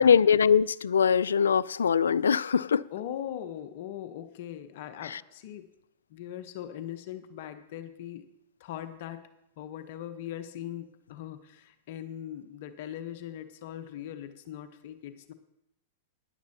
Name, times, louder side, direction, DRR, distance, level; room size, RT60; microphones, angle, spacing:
voice 1, 0.0-2.8, left 7 dB, 90° left, 0.4 m, -22 dB
voice 2, 2.9-5.7 6.1-8.3 8.6-9.2 9.6-15.3, left 11 dB, 60° left, 1.0 m, -40 dB
17.0 x 11.0 x 2.9 m
hypercardioid pair, 115°, 0 cm